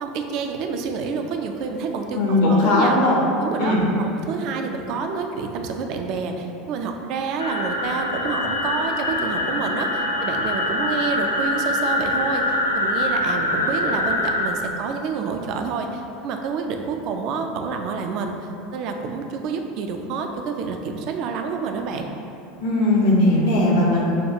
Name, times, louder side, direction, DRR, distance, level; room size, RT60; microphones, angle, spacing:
voice 1, 0.0-3.0 3.4-18.4 18.7-22.1, right 5 dB, 50° right, 4 dB, 0.3 m, -28 dB
voice 2, 2.1-3.2 3.6-3.8 22.6-24.0, left 2 dB, 60° left, -3 dB, 0.8 m, -18 dB
sound 1, 7.4-14.5, left 1 dB, 85° left, 0.3 m, -24 dB
6.4 x 2.3 x 2.7 m, 2.7 s
figure-of-eight pair, 75°, 0 cm